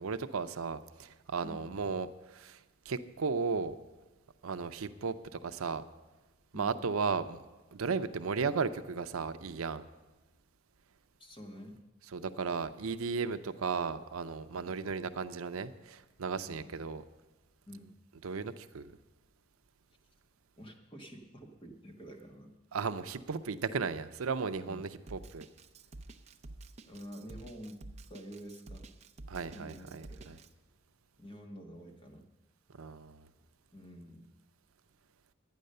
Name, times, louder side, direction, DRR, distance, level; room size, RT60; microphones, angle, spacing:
voice 1, 0.0-2.6 2.9-3.7 4.4-5.8 6.5-7.4 7.7-9.8 12.1-17.0 18.2-18.9 22.7-25.5 29.3-30.4 32.8-33.2, right 5 dB, 90° right, 11 dB, 0.6 m, -35 dB
voice 2, 11.2-11.8 16.4-16.8 17.7-17.9 20.6-22.5 24.6-24.8 26.8-27.8 28.1-28.9 29.5-30.4 31.2-32.3 33.7-34.3, equal, 25° left, 2 dB, 1.4 m, -48 dB
Drum kit, 25.1-30.5, right 2 dB, 30° right, 0.5 m, -49 dB
11.5 x 9.3 x 6.6 m, 1.2 s
head